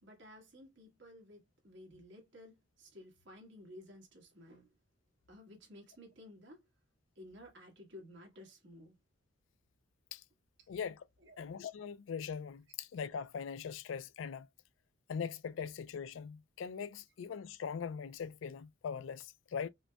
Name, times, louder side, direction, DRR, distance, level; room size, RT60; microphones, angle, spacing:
voice 1, 0.0-4.7 5.3-6.6 7.1-9.0 10.6-10.7 11.2-11.4, left 1 dB, 65° right, 1.5 m, -55 dB
voice 2, 10.7-11.0 11.4-14.5 15.1-19.7, left 6 dB, 75° left, 0.3 m, -41 dB
5.1 x 2.2 x 2.2 m
head